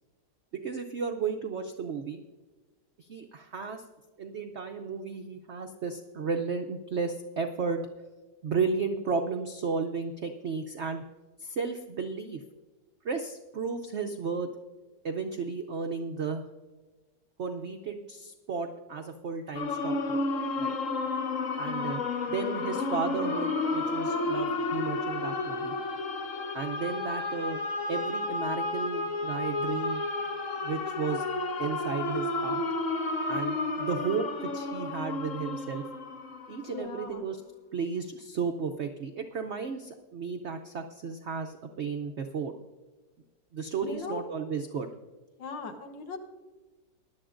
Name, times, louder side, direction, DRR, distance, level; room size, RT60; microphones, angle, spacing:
voice 1, 0.5-2.2 3.0-3.8 4.2-7.8 8.4-11.0 11.4-12.4 13.0-14.5 15.0-16.5 17.4-20.2 20.6-20.8 21.6-25.7 26.5-27.6 27.9-30.0 30.5-31.3 31.6-32.6 33.3-35.8 36.5-37.4 37.7-42.5 43.5-44.9, right 5 dB, 85° right, 5 dB, 0.6 m, -33 dB
sound 1, 19.5-37.2, left 3 dB, 50° left, 1.2 m, -32 dB
voice 2, 36.7-37.2 43.8-44.2 45.4-46.2, left 4 dB, 90° left, 5 dB, 1.8 m, -38 dB
19.0 x 11.0 x 2.5 m, 1.3 s
omnidirectional pair, 2.0 m